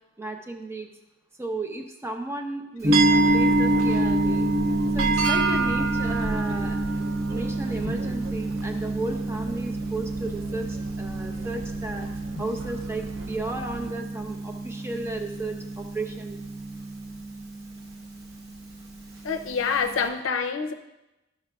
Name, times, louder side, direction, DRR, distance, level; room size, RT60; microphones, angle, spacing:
voice 1, 0.2-0.9 1.4-3.0 3.3-4.5 4.9-6.8 7.3-12.1 12.4-16.4, right 2 dB, 15° right, 4 dB, 0.6 m, -34 dB
Gong, 2.8-20.1, right 1 dB, 50° right, 1.1 m, -28 dB
sound 1, 2.9-14.0, right 5 dB, 85° right, 0.4 m, -31 dB
voice 2, 19.2-20.7, left 5 dB, 80° left, 5 dB, 0.5 m, -26 dB
12.5 x 5.8 x 2.3 m, 0.98 s
head